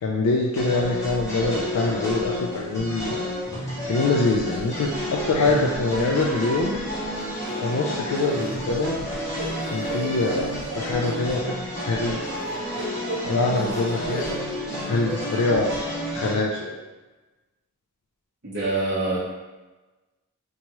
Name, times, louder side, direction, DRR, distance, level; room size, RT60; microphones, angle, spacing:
voice 1, 0.0-3.3 3.6-6.8 7.5-9.0 9.7-11.5 11.8-12.2 13.2-14.4 14.9-15.8 16.1-16.7, left 3 dB, 90° left, -1 dB, 0.3 m, -24 dB
sound 1, 0.5-16.3, equal, 15° left, 0.6 m, -30 dB
sound 2, 4.5-4.9 5.3-5.6 5.9-6.0 7.1-7.8 8.1-11.2 12.3-14.4 14.6-15.4, right 1 dB, 35° right, 0.4 m, -37 dB
voice 2, 18.4-19.2, right 2 dB, 50° right, -13 dB, 0.9 m, -25 dB
2.8 x 2.3 x 3.0 m, 1.2 s
head